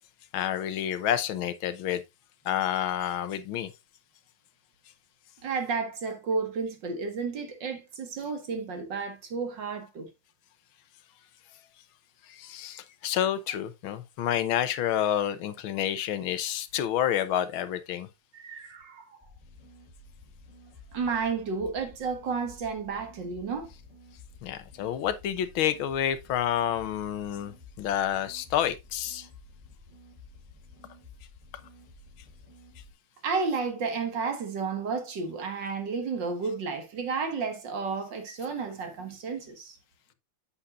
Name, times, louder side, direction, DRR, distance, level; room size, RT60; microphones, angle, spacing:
voice 1, 0.3-2.0 2.4-3.7 12.3-18.1 24.4-29.3, left 10 dB, 85° left, 1.7 m, -29 dB
voice 2, 5.4-10.1 18.3-19.2 20.9-23.7 33.2-39.8, right 5 dB, 65° right, 2.3 m, -32 dB
sound 1, 19.2-32.9, left 3 dB, 15° right, 2.9 m, -52 dB
8.5 x 8.1 x 2.4 m
omnidirectional pair, 2.2 m